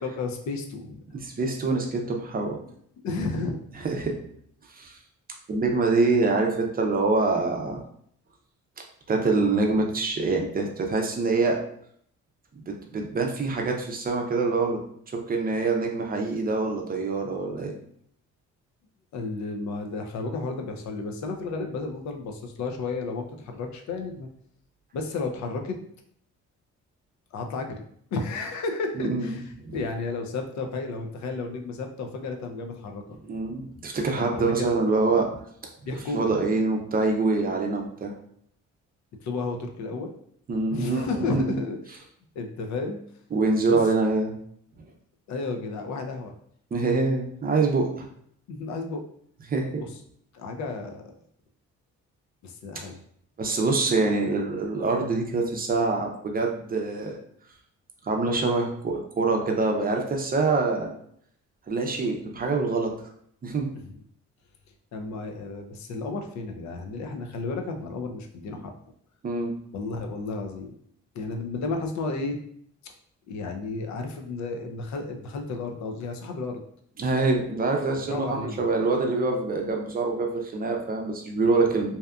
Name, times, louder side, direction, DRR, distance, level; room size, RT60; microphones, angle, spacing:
voice 1, 0.0-1.0 3.0-3.6 19.1-24.3 24.9-25.8 27.3-27.8 28.1-29.4 29.7-33.0 34.2-34.8 35.8-36.3 39.2-40.1 40.7-41.8 42.4-43.0 43.6-43.8 45.3-46.3 48.5-49.0 49.8-49.9 50.3-51.0 52.4-52.9 63.9-64.0 64.9-68.7 69.7-70.7 71.1-72.4 73.3-76.6 77.9-78.7, left 3 dB, 70° left, 4 dB, 0.5 m, -32 dB
voice 2, 1.1-2.6 3.8-4.2 4.7-5.0 5.5-7.8 9.1-11.6 12.7-14.8 15.3-17.7 28.9-29.8 33.2-35.4 36.1-38.1 40.5-41.6 43.3-44.4 46.7-48.1 49.5-49.8 52.7-52.8 53.4-57.1 58.0-60.9 61.7-62.9 63.4-63.7 69.2-69.5 77.0-82.0, right 3 dB, 30° right, 2 dB, 0.5 m, -25 dB
2.7 x 2.3 x 2.3 m, 0.66 s
cardioid pair, 90°, 30 cm